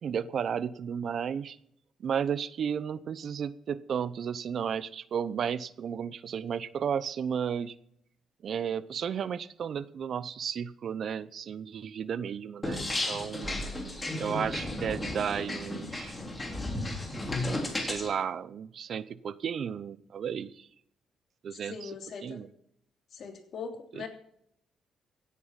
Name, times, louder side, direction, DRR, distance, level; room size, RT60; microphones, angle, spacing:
voice 1, 0.0-1.6 2.0-7.7 8.4-13.5 14.2-16.1 17.8-20.7 21.4-21.9 22.2-22.5 24.0-24.1, right 7 dB, 60° right, 17 dB, 0.7 m, -33 dB
sound 1, 12.6-18.1, left 1 dB, 20° left, 3.3 m, -34 dB
voice 2, 21.5-22.4 23.1-24.1, left 5 dB, 60° left, 3 dB, 3.1 m, -41 dB
16.5 x 8.6 x 5.7 m, 0.70 s
cardioid pair, 90°, 0 cm